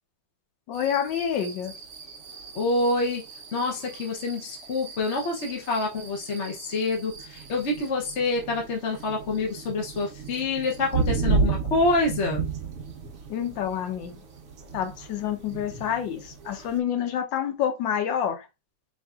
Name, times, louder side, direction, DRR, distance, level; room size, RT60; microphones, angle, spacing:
voice 1, 0.7-1.7 13.3-14.2 14.7-18.5, left 9 dB, 85° left, 1.5 m, -28 dB
sound 1, 0.7-16.8, right 5 dB, 55° right, 0.9 m, -34 dB
voice 2, 2.5-3.2 3.5-12.5, left 2 dB, 50° left, 0.9 m, -27 dB
4.2 x 3.5 x 2.4 m
omnidirectional pair, 1.9 m